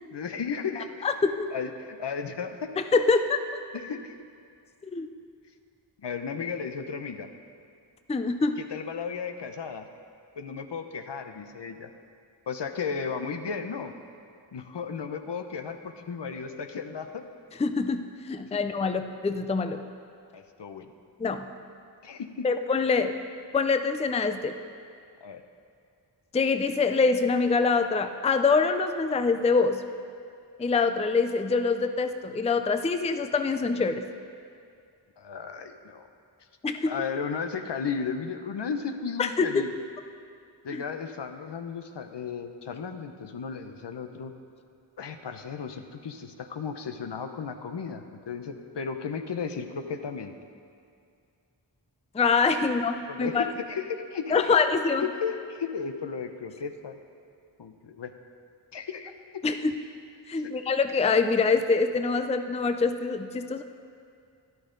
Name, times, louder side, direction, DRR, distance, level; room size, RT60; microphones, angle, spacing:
voice 1, 0.1-1.1 1.5-2.7 3.7-4.2 6.0-7.3 8.6-9.9 10.4-11.9 12.5-13.9 14.5-17.3 18.5-18.6 20.3-20.9 22.0-22.5 25.2-25.4 35.2-36.1 36.8-39.7 40.6-44.3 45.0-50.3 53.1-54.6 55.0-57.0 57.6-58.1 58.7-59.4 60.3-60.6, left 6 dB, 65° left, 7 dB, 0.8 m, -34 dB
voice 2, 1.0-1.5 2.9-3.4 4.9-5.1 8.1-8.6 17.6-19.8 21.2-21.5 22.4-23.1 23.5-24.5 26.3-29.8 30.6-34.0 36.6-36.9 39.2-39.6 52.1-53.5 54.3-55.0 59.4-59.7 60.3-63.6, left 4 dB, 15° left, 8 dB, 0.4 m, -25 dB
12.5 x 11.5 x 3.9 m, 2.3 s
wide cardioid pair, 75°, 45 cm